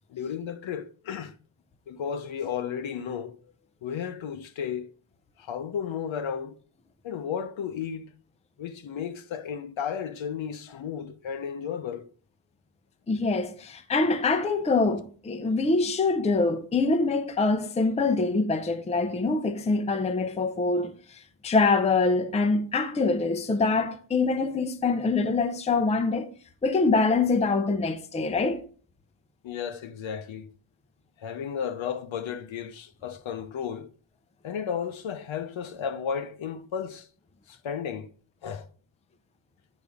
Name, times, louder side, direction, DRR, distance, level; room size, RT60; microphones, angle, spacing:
voice 1, 0.1-1.3 1.9-3.4 3.8-4.9 5.4-6.6 7.0-8.1 8.6-12.1 29.4-30.5 31.2-33.9 34.4-37.1 37.5-38.1 38.4-38.7, left 7 dB, 70° left, 0.8 m, -33 dB
voice 2, 13.1-26.3 26.6-28.6, left 3 dB, 15° left, 0.5 m, -25 dB
8.2 x 5.2 x 3.5 m
wide cardioid pair, 165°, 48 cm